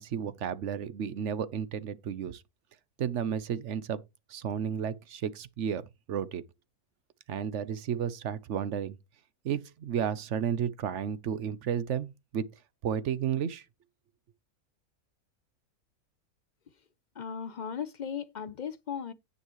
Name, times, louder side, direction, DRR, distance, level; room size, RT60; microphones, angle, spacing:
voice 1, 0.0-2.4 3.0-4.0 4.3-6.4 7.3-9.0 9.4-12.5 12.8-13.6, right 8 dB, 60° right, 0.9 m, -32 dB
voice 2, 17.2-19.1, left 7 dB, 65° left, 0.4 m, -37 dB
16.0 x 5.5 x 3.0 m
omnidirectional pair, 1.6 m